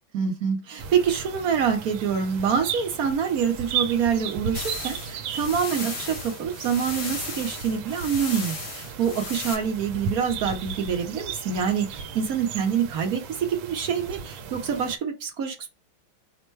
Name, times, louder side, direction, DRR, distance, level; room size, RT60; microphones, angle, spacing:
voice 1, 0.1-15.7, right 7 dB, 60° right, 1.1 m, -26 dB
sound 1, 0.8-15.0, right 6 dB, 75° right, 1.4 m, -36 dB
sound 2, 4.5-9.5, left 3 dB, 75° left, 2.4 m, -36 dB
5.3 x 2.1 x 4.5 m
omnidirectional pair, 2.3 m